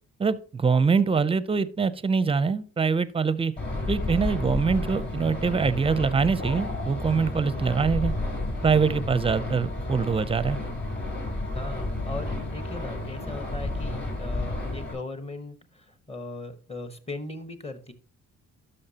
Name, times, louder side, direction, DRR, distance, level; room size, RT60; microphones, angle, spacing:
voice 1, 0.2-3.5 3.9-8.1 8.6-10.6, right 5 dB, 20° right, 0.5 m, -24 dB
sound 1, 3.6-14.9, left 2 dB, 35° left, 3.7 m, -31 dB
sound 2, 6.4-6.9, left 3 dB, 55° left, 1.6 m, -37 dB
voice 2, 11.5-17.9, left 2 dB, 20° left, 1.0 m, -38 dB
12.0 x 5.5 x 2.8 m
cardioid pair, 90°, 30 cm